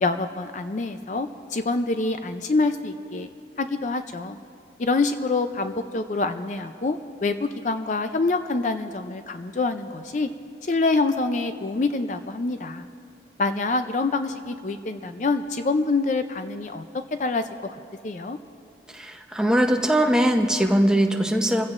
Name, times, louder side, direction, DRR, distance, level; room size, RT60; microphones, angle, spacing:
voice 1, 0.0-3.3 3.6-4.4 4.8-10.3 10.6-12.9 13.4-16.8 17.2-18.4, left 3 dB, 45° left, 9 dB, 0.4 m, -26 dB
voice 2, 18.9-21.7, equal, 5° right, 3 dB, 0.8 m, -21 dB
27.0 x 15.5 x 2.5 m, 2.5 s
head